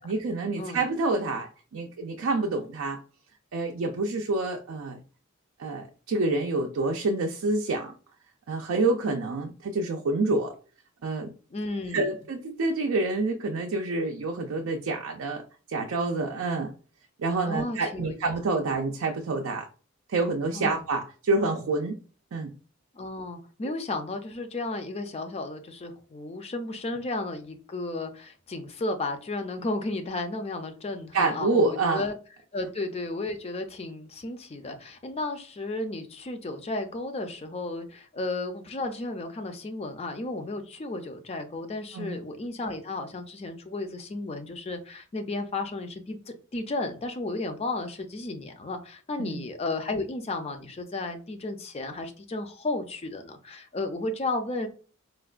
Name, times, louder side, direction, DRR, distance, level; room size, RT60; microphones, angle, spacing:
voice 1, 0.0-3.0 3.5-5.0 5.6-7.9 8.5-10.5 11.0-11.3 11.9-15.4 15.7-16.7 17.2-19.7 20.1-22.0 22.3-22.5 31.1-32.1 41.9-42.2 49.2-49.4, right 3 dB, 80° right, 2 dB, 0.4 m, -27 dB
voice 2, 11.5-12.1 17.5-18.2 20.5-20.8 22.9-32.2 32.5-54.7, left 2 dB, 30° left, 6 dB, 0.4 m, -33 dB
4.4 x 2.2 x 2.4 m, 0.38 s
head